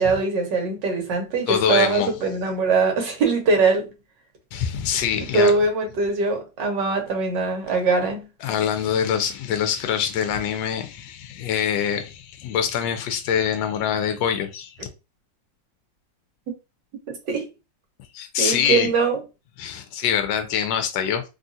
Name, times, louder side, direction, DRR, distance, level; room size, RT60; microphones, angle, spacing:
voice 1, 0.0-3.9 5.2-8.3 17.1-17.5 18.4-19.2, right 4 dB, 75° right, 1.6 m, -22 dB
voice 2, 1.5-2.1 4.5-5.5 8.4-14.9 18.0-18.9 19.6-21.2, left 8 dB, 80° left, 1.2 m, -24 dB
3.5 x 2.3 x 2.6 m
omnidirectional pair, 2.0 m